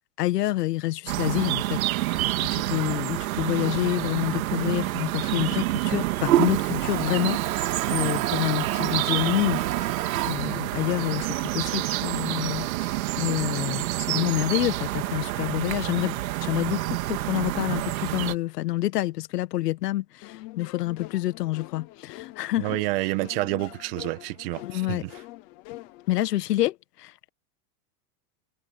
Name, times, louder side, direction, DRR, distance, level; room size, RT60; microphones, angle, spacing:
voice 1, 0.2-12.9 13.2-22.7 24.6-25.0 26.1-27.3, left 16 dB, 85° left, 1.7 m, -28 dB
sound 1, 1.1-18.4, right 16 dB, 60° right, 2.3 m, -28 dB
Toilet flush, 1.3-12.8, right 14 dB, 90° right, 4.9 m, -32 dB
sound 2, 20.2-26.2, left 18 dB, 20° left, 0.6 m, -44 dB
voice 2, 22.6-25.1, right 19 dB, 40° right, 1.7 m, -29 dB
supercardioid pair, 175°, 46 cm